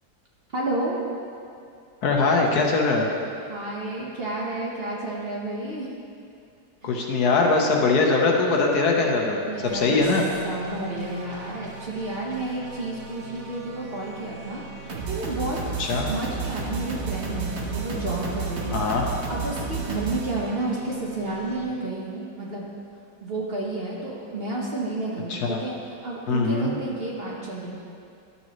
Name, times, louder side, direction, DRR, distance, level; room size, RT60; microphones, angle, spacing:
voice 1, 0.5-1.0 3.5-5.9 6.8-7.0 9.4-10.0 10.4-14.6 15.1-18.8 19.3-22.7 23.2-27.7, right 2 dB, 40° right, -4 dB, 1.1 m, -31 dB
voice 2, 2.0-3.1 6.8-10.2 15.8-16.1 18.7-19.1 25.3-25.6 26.3-26.7, left 3 dB, 70° left, 0 dB, 1.4 m, -22 dB
sound 1, 9.6-21.7, right 4 dB, 60° right, 1.2 m, -34 dB
11.5 x 6.8 x 3.1 m, 2.5 s
omnidirectional pair, 1.8 m